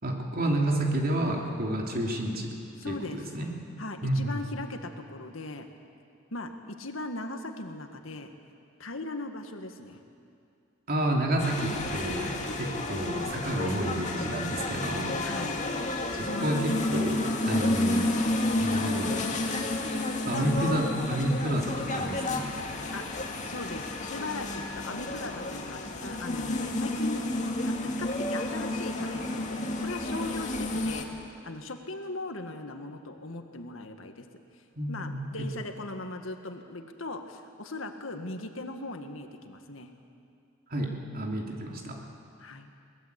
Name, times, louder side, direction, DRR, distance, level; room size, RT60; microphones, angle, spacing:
voice 1, 0.0-2.6 2.8-3.5 4.0-4.4 10.9-15.2 16.1-18.1 18.6-19.2 20.3-22.5 34.8-35.5 40.7-42.0, right 1 dB, 50° right, 0 dB, 3.1 m, -30 dB
voice 2, 2.8-3.2 3.8-5.7 6.3-8.3 8.8-10.0 15.2-15.6 16.2-16.9 22.9-23.0 23.4-27.2 27.6-34.3 34.9-39.9 42.4-42.7, left 2 dB, 85° left, 5 dB, 1.9 m, -39 dB
sound 1, 11.4-31.0, left 2 dB, 40° left, 2.1 m, -31 dB
22.5 x 19.5 x 8.3 m, 2.5 s
head